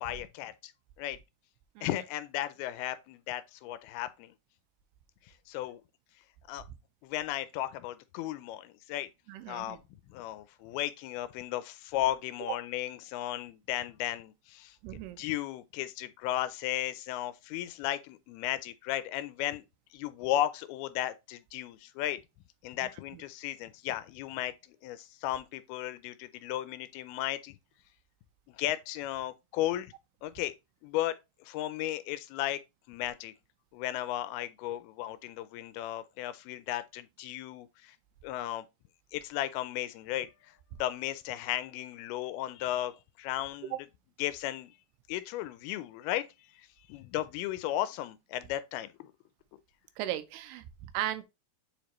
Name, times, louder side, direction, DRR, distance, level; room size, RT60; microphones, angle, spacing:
voice 1, 0.0-0.7 1.0-1.2 1.8-4.3 5.2-5.8 6.5-6.6 7.0-9.1 9.5-9.8 10.1-19.7 19.9-22.2 22.6-27.6 28.5-29.9 30.2-30.5 30.8-31.2 31.4-32.6 32.9-33.3 33.7-38.0 38.2-38.7 39.1-43.8 44.2-44.8 45.1-49.1, left 13 dB, 80° left, 2.4 m, -35 dB
voice 2, 9.3-9.8 14.8-15.2 23.1-23.2 43.7-43.8 50.0-51.2, right 13 dB, 85° right, 2.7 m, -36 dB
7.2 x 5.2 x 3.0 m
omnidirectional pair, 4.6 m